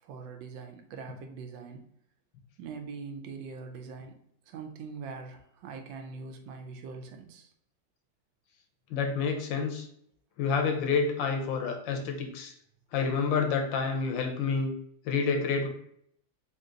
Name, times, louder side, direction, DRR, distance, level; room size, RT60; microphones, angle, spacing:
voice 1, 0.0-1.8 2.6-4.2 4.5-7.5, right 5 dB, 85° right, 5 dB, 1.3 m, -42 dB
voice 2, 8.9-9.9 10.4-12.5 12.9-14.7 15.0-15.7, left 5 dB, 85° left, 4 dB, 1.4 m, -28 dB
3.9 x 2.7 x 3.7 m, 0.69 s
omnidirectional pair, 2.0 m